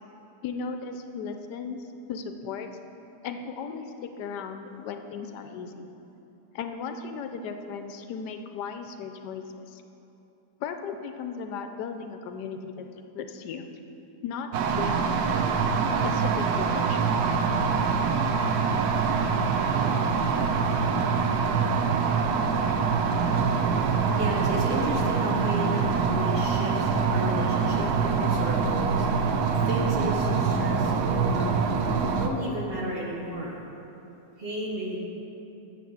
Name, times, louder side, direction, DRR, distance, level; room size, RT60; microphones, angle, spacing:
voice 1, 0.4-1.8 2.1-2.7 3.2-5.9 6.5-9.8 10.6-12.9 13.1-13.7 14.2-15.4 16.0-17.1, left 5 dB, 80° left, 7 dB, 1.2 m, -36 dB
sound 1, 14.5-32.3, right 5 dB, 75° right, 1.1 m, -25 dB
sound 2, 18.3-25.2, right 3 dB, 60° right, 0.7 m, -42 dB
voice 2, 23.3-31.5 32.2-33.6 34.4-35.0, equal, 40° right, -2 dB, 1.1 m, -33 dB
7.7 x 6.0 x 7.0 m, 2.9 s
omnidirectional pair, 1.8 m